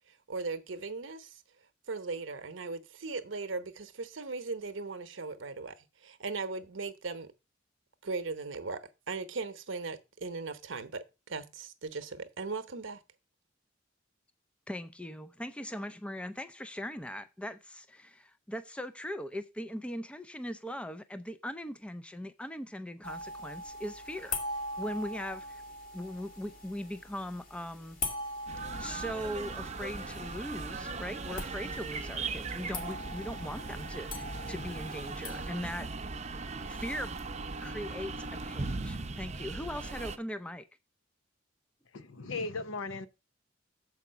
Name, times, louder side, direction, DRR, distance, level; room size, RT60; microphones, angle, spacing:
voice 1, 0.1-1.4 1.9-7.3 8.0-13.0, right 4 dB, 70° right, 0.9 m, -38 dB
voice 2, 14.7-24.4 24.8-25.6 25.9-28.0 28.8-36.1 36.7-37.2 37.6-40.6, equal, 5° left, 0.4 m, -40 dB
sound 1, 23.0-35.5, left 1 dB, 45° left, 1.9 m, -42 dB
sound 2, 28.5-40.2, right 3 dB, 35° right, 0.7 m, -39 dB
voice 3, 41.9-43.1, left 3 dB, 90° left, 0.8 m, -37 dB
7.1 x 4.9 x 5.5 m
head